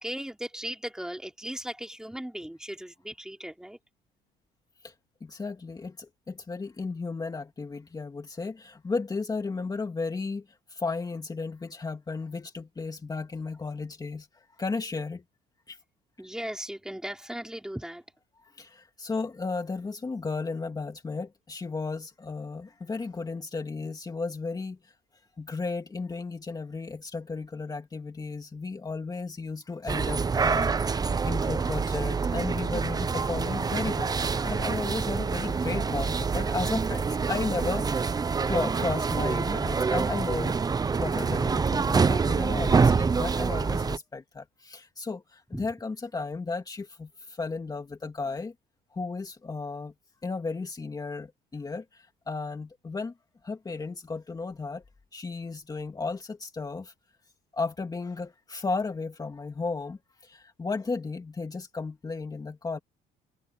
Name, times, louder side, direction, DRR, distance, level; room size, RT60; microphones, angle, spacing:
voice 1, 0.0-3.8 16.2-18.0 45.5-45.7, right 1 dB, 5° right, 3.6 m, -37 dB
voice 2, 5.2-15.2 15.7-15.8 18.4-24.9 25.4-38.1 38.5-40.6 41.0-48.5 48.9-49.9 50.2-53.1 53.4-54.8 55.1-56.9 57.5-62.8, left 4 dB, 20° left, 2.5 m, -34 dB
sound 1, 29.9-44.0, right 5 dB, 25° right, 0.7 m, -26 dB
cardioid pair, 110°, 17 cm